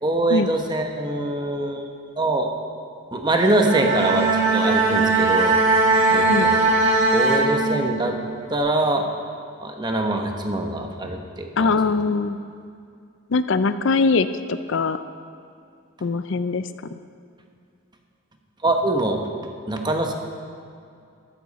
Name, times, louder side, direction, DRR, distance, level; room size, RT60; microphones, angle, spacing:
voice 1, 0.0-1.9 2.2-2.5 3.1-5.6 6.1-6.7 7.1-8.2 8.5-9.0 9.6-11.8 18.6-19.2 19.7-20.1, right 2 dB, 20° right, 3 dB, 1.1 m, -23 dB
Bowed string instrument, 3.5-8.2, right 3 dB, 55° right, 1.9 m, -19 dB
voice 2, 11.6-12.4 13.3-15.0 16.0-16.7, left 4 dB, 60° left, 12 dB, 0.5 m, -21 dB
13.5 x 13.5 x 4.2 m, 2.4 s
head